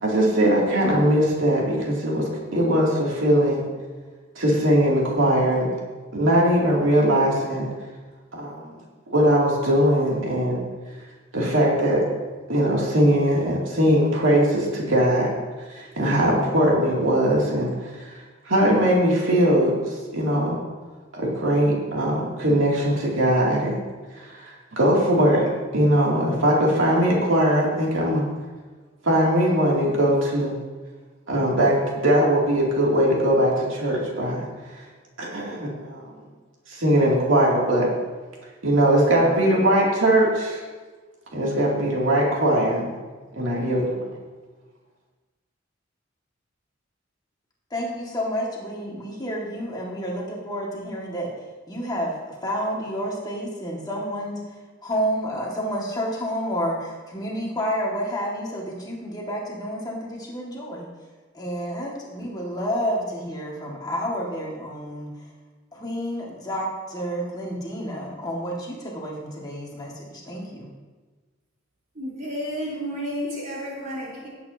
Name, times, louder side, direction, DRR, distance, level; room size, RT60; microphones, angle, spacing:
voice 1, 0.0-3.6 4.4-5.7 6.1-7.7 8.3-8.7 9.1-10.6 11.3-12.0 12.5-15.3 15.7-18.2 18.5-20.6 21.1-23.8 24.2-25.4 25.7-28.3 29.0-30.5 31.3-31.8 32.0-34.4 35.2-36.0 36.7-37.9 38.6-40.6 41.3-42.9 43.3-44.1, right 1 dB, 85° right, -4 dB, 2.6 m, -20 dB
voice 2, 47.7-51.3 51.7-54.6 54.8-60.9 61.3-65.3 65.7-70.7, equal, 20° left, -3 dB, 1.9 m, -30 dB
voice 3, 71.9-74.3, equal, 45° right, -5 dB, 3.6 m, -31 dB
17.0 x 8.5 x 2.8 m, 1.3 s
head